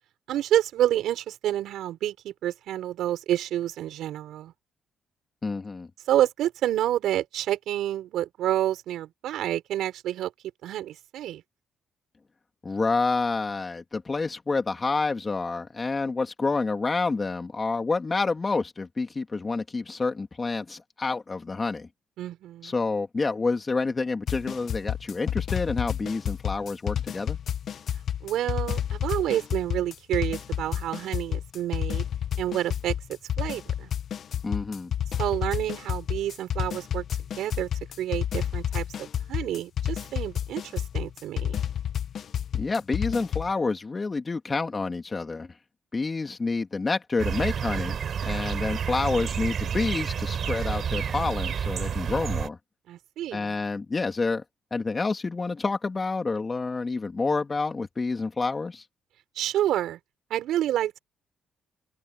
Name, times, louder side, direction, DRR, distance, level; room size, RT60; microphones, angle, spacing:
voice 1, 0.3-4.5 6.1-10.3 10.6-11.4 22.2-22.7 28.2-32.0 32.4-33.9 35.2-37.0 37.4-37.7 38.0-41.6 52.9-53.5 59.4-60.0 60.3-61.0, right 12 dB, 80° right, 6.1 m, -28 dB
voice 2, 5.4-5.9 12.6-21.9 22.6-27.4 34.4-34.9 42.5-45.5 45.9-52.6 53.3-54.4 54.7-58.8, left 3 dB, 30° left, 2.7 m, -28 dB
sound 1, 24.3-43.5, left 9 dB, 60° left, 1.3 m, -30 dB
sound 2, 47.2-52.5, right 7 dB, 55° right, 6.5 m, -29 dB
open air
cardioid pair, 90°, 0 cm